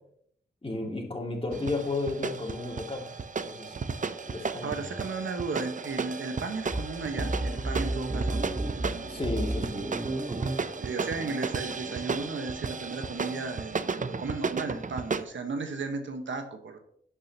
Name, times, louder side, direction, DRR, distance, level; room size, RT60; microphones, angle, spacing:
voice 1, 0.6-3.1 3.4-3.7 4.2-4.9 9.1-9.8, left 2 dB, 30° left, 0 dB, 2.6 m, -33 dB
sound 1, 1.5-15.2, right 5 dB, 40° right, 0.6 m, -34 dB
voice 2, 4.6-8.4 8.7-9.1 10.8-16.8, right 4 dB, 80° right, 6 dB, 1.3 m, -35 dB
sound 2, 6.7-12.3, right 1 dB, 25° right, 1.0 m, -33 dB
11.5 x 8.7 x 2.9 m, 0.68 s
cardioid pair, 55°, 19 cm